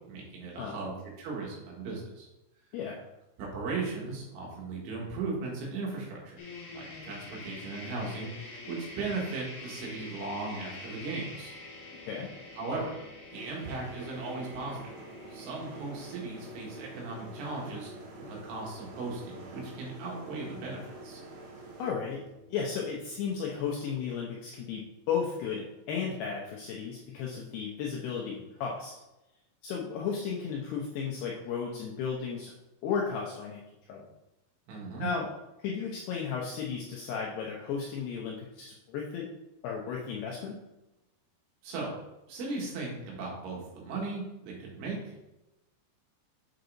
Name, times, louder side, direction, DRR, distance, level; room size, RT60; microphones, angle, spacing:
voice 1, 0.1-2.3 3.4-6.4 6.7-11.5 12.6-13.0 13.3-14.8 15.3-17.9 18.2-21.2 34.7-35.1 41.6-41.9 42.3-45.2, right 3 dB, 75° right, -2 dB, 4.2 m, -37 dB
voice 2, 2.7-3.1 12.1-12.3 21.8-22.2 22.5-28.9 29.6-32.5 32.8-33.6 33.9-34.1 35.0-35.3 35.6-39.3 39.6-40.6, left 6 dB, 80° left, -2 dB, 2.4 m, -34 dB
sound 1, 6.4-23.9, left 2 dB, 50° left, 3.6 m, -48 dB
sound 2, 13.3-21.9, right 2 dB, 50° right, 2.3 m, -48 dB
7.9 x 6.6 x 3.9 m, 0.96 s
omnidirectional pair, 5.8 m